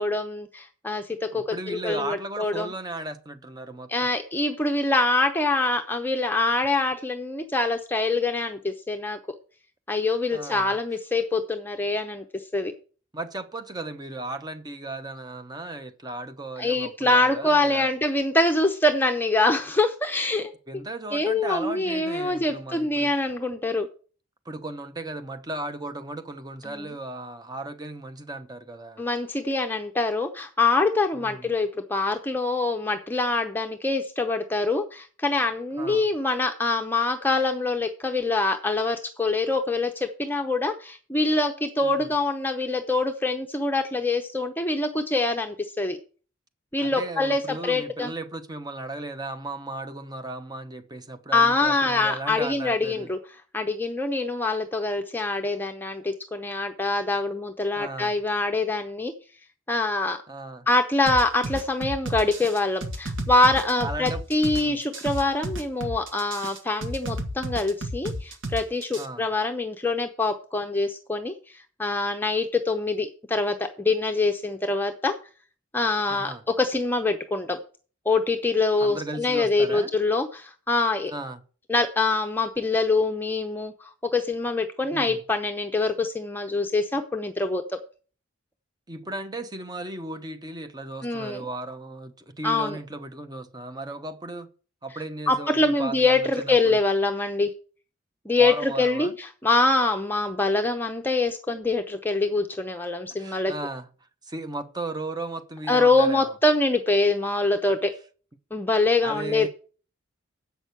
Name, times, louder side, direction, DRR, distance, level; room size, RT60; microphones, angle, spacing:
voice 1, 0.0-2.7 3.9-9.2 9.9-12.7 16.6-20.5 21.1-23.9 26.7-26.9 29.0-46.0 46.7-48.1 51.3-53.2 53.5-59.1 59.7-60.2 60.7-75.2 75.7-77.6 78.1-81.1 81.7-87.8 91.0-91.4 92.4-92.8 95.3-97.5 98.3-103.5 105.7-107.9 108.5-109.5, left 2 dB, 10° left, 0.7 m, -24 dB
voice 2, 1.3-4.1 10.3-10.8 13.1-17.9 20.7-23.1 24.4-29.0 31.1-31.5 35.8-36.1 41.8-42.1 46.8-53.1 57.8-58.2 60.3-60.7 63.8-64.2 64.5-64.8 69.0-69.3 76.1-76.4 78.8-79.9 81.1-81.4 84.9-85.2 88.9-94.5 94.8-96.8 98.3-99.1 103.2-103.9 104.2-106.4 109.0-109.5, right 2 dB, 20° right, 0.9 m, -36 dB
sound 1, 61.1-69.1, right 1 dB, 70° right, 1.5 m, -32 dB
8.2 x 6.2 x 8.1 m
head